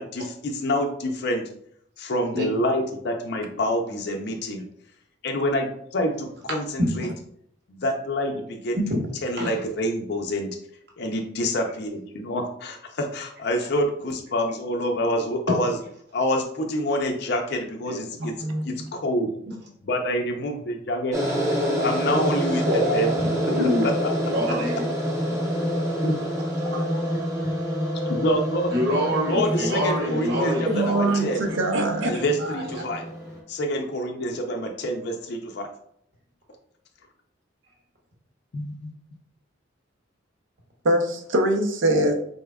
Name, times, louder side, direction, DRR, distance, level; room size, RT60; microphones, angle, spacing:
voice 1, 0.0-1.5 2.0-4.6 5.2-7.1 7.7-8.8 9.2-10.6 11.0-15.8 16.1-18.3 18.6-19.3 19.9-21.2 21.8-23.1 23.4-23.5 24.0-24.1 26.0-26.2 28.1-28.7 29.3-31.5 32.1-33.1 33.5-35.7 38.5-38.9, equal, 55° left, 0.4 m, -27 dB
voice 2, 18.4-18.9 30.7-32.2 40.8-42.1, right 1 dB, 70° right, 0.6 m, -23 dB
sound 1, 21.1-33.4, equal, 15° right, 0.7 m, -27 dB
voice 3, 22.7-23.9 24.2-24.8 25.3-25.4 26.6-26.8 28.7-31.1 32.4-32.8, equal, 55° right, 0.9 m, -26 dB
4.2 x 3.4 x 2.2 m
head